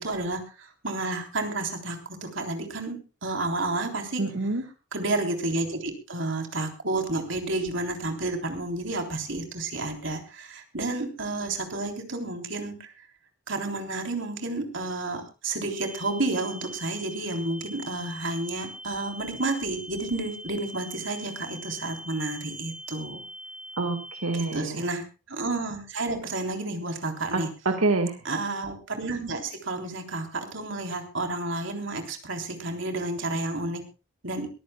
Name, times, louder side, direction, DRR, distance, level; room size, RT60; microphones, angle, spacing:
voice 1, 0.0-4.2 4.9-12.9 13.5-23.2 24.3-27.5 28.2-33.8 34.2-34.5, right 2 dB, 60° right, 4 dB, 3.6 m, -31 dB
voice 2, 4.2-4.6 23.8-24.8 27.3-28.2, right 3 dB, 90° right, 6 dB, 1.8 m, -27 dB
sound 1, 15.7-24.6, equal, 30° right, 5.7 m, -43 dB
22.5 x 15.0 x 2.3 m, 0.32 s
head